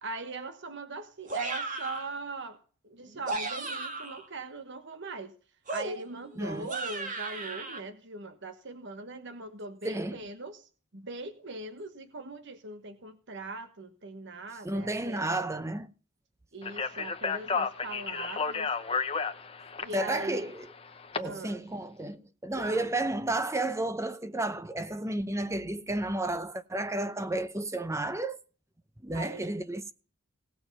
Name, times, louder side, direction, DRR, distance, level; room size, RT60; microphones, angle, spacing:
voice 1, 0.0-5.3 5.7-15.5 16.5-18.7 19.8-20.5 21.2-21.6 22.5-22.9 29.1-29.5, right 3 dB, 55° right, 1.2 m, -41 dB
sound 1, 1.3-2.1 3.1-4.3 5.7-7.8, right 3 dB, 35° right, 2.0 m, -35 dB
voice 2, 6.4-6.7 9.8-10.3 14.6-15.9 19.9-20.7 21.2-28.4 29.0-29.9, right 2 dB, 15° right, 0.7 m, -32 dB
Speech, 16.6-21.2, left 5 dB, 25° left, 0.9 m, -32 dB
18.0 x 6.9 x 5.4 m
head